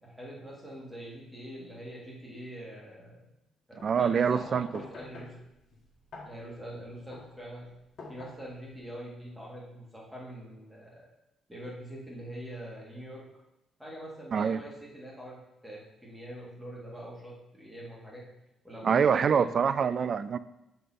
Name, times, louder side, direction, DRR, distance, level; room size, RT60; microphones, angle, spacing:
voice 1, 0.0-3.3 3.7-5.3 6.2-7.7 8.1-11.1 11.5-13.2 13.8-18.2 18.6-19.5, right 1 dB, 5° right, -5 dB, 2.5 m, -44 dB
sound 1, 3.8-8.8, left 3 dB, 60° left, 1.7 m, -48 dB
voice 2, 3.8-4.7 14.3-14.6 18.8-20.4, right 6 dB, 50° right, 15 dB, 0.3 m, -25 dB
6.3 x 4.4 x 4.3 m, 0.89 s
cardioid pair, 90°, 0 cm